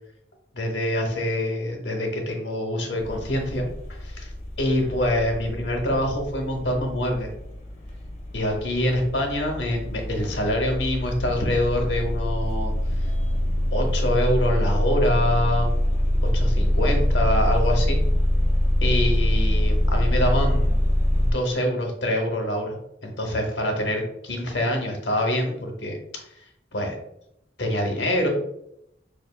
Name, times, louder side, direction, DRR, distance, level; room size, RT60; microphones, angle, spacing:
voice 1, 0.5-3.7 4.0-4.3 4.6-7.3 8.3-12.7 13.7-15.7 16.3-18.0 18.8-20.8 21.2-26.0 26.7-27.0 27.6-28.3, left 1 dB, 90° left, 2 dB, 0.8 m, -25 dB
sound 1, 3.0-21.3, left 1 dB, 35° left, 0.8 m, -24 dB
4.7 x 2.5 x 2.3 m, 0.79 s
head